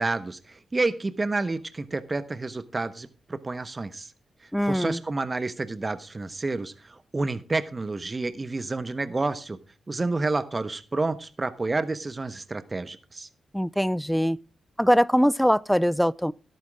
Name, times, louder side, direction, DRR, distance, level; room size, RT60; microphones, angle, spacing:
voice 1, 0.0-4.1 4.6-9.6 9.9-13.3, right 3 dB, 35° right, 1.1 m, -29 dB
voice 2, 4.5-5.0 13.5-14.4 14.8-16.3, equal, ahead, 0.5 m, -22 dB
12.5 x 11.5 x 3.6 m
supercardioid pair, 40°, 0 cm